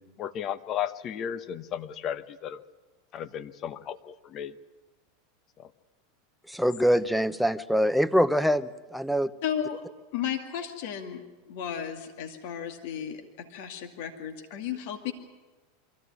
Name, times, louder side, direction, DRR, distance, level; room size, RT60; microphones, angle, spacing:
voice 1, 0.0-2.6 3.1-4.6 5.6-5.7, left 9 dB, 40° left, 12 dB, 1.1 m, -35 dB
voice 2, 6.5-9.3, equal, ahead, 12 dB, 0.9 m, -24 dB
voice 3, 9.4-9.8 10.1-11.2 11.5-15.1, left 9 dB, 60° left, 4 dB, 2.3 m, -34 dB
23.0 x 15.0 x 9.8 m, 1.2 s
hypercardioid pair, 90°, 0 cm